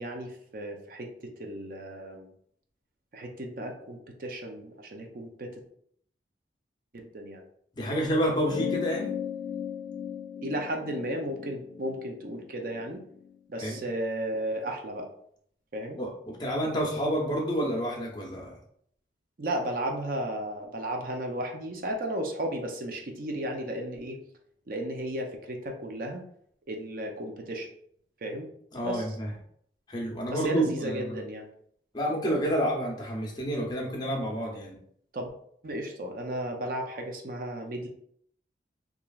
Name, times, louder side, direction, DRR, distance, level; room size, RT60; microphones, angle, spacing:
voice 1, 0.0-2.3 3.1-5.5 6.9-7.4 10.4-13.0 13.5-15.1 15.7-16.0 19.4-24.2 24.7-26.2 26.7-27.7 28.2-28.5 28.8-29.2 30.3-31.5 35.1-35.3 35.6-37.9, right 1 dB, 50° right, 2 dB, 0.5 m, -34 dB
voice 2, 7.7-9.1 13.6-13.8 16.0-18.6 28.7-29.3 29.9-31.1 31.9-34.8, equal, 25° left, -2 dB, 0.7 m, -29 dB
sound 1, 8.5-13.3, left 8 dB, 65° left, 0.3 m, -36 dB
3.0 x 2.4 x 2.3 m, 0.65 s
head